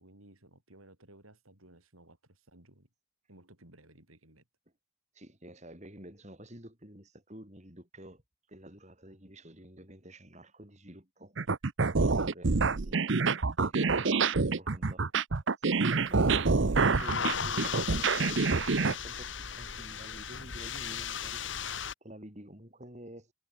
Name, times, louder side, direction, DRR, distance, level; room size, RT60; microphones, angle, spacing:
voice 1, 0.0-2.9 3.3-4.4, right 1 dB, 85° right, 7.5 m, -57 dB
voice 2, 5.1-8.2 8.5-11.4 12.0-13.1 13.6-15.0 15.6-21.6 22.0-23.3, right 1 dB, 35° right, 5.1 m, -50 dB
sound 1, 11.4-18.9, right 4 dB, 60° right, 0.8 m, -27 dB
sound 2, 15.9-21.9, left 7 dB, 60° left, 1.7 m, -37 dB
head